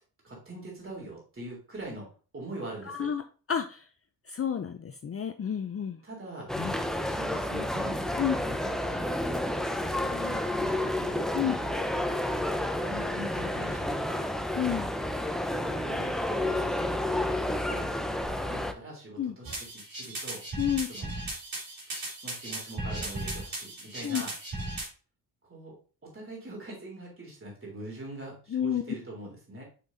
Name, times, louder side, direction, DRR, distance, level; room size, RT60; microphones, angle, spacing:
voice 1, 0.2-2.1 2.3-3.1 6.0-6.5 6.9-9.0 9.8-12.0 12.7-14.2 15.6-19.5 19.9-20.4 20.9-21.1 22.2-24.3 25.4-25.8 26.0-29.6, right 1 dB, 30° right, -2 dB, 3.5 m, -43 dB
voice 2, 2.8-3.2 3.5-3.9 4.2-6.0 6.5-6.8 8.2-8.4 11.3-11.5 14.5-14.9 19.2-19.4 20.6-20.9 24.0-24.2 28.5-28.8, left 9 dB, 35° left, 8 dB, 0.6 m, -30 dB
sound 1, 6.5-18.7, left 1 dB, ahead, 0.8 m, -30 dB
Radio Machine, 19.4-24.9, right 2 dB, 60° right, 3.4 m, -36 dB
6.8 x 6.1 x 2.7 m, 0.37 s
cardioid pair, 70°, 40 cm